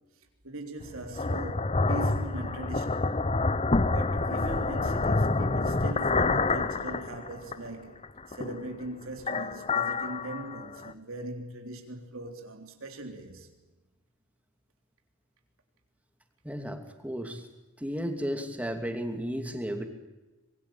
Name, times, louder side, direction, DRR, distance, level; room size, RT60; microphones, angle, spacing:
voice 1, 0.4-3.2 3.8-8.0 8.3-13.5, right 2 dB, 75° right, 3.5 m, -40 dB
sound 1, 0.8-7.7 8.0-8.8 9.2-10.9, left 3 dB, 30° left, 0.8 m, -28 dB
voice 2, 16.4-17.4 17.8-19.9, equal, 5° right, 2.7 m, -33 dB
25.0 x 22.5 x 8.9 m
head